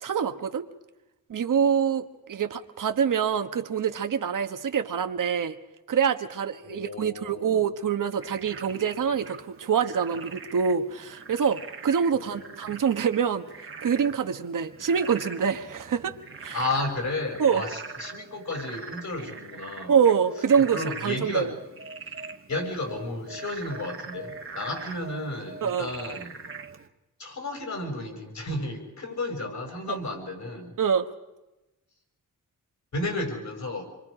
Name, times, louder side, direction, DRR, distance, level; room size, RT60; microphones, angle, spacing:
voice 1, 0.0-0.7 1.3-5.6 5.9-13.4 13.8-16.6 17.4-17.6 19.9-21.5 25.6-25.9 29.9-30.0 30.8-31.1, right 7 dB, 75° right, 7 dB, 1.3 m, -25 dB
voice 2, 6.6-7.6 12.2-12.6 16.5-19.9 20.7-21.5 22.5-26.3 27.2-30.8 32.9-33.8, left 2 dB, 60° left, 3 dB, 6.2 m, -33 dB
Frog, 8.2-26.9, right 4 dB, 40° right, 1.4 m, -42 dB
28.0 x 23.5 x 5.0 m, 1.0 s
wide cardioid pair, 160°, 32 cm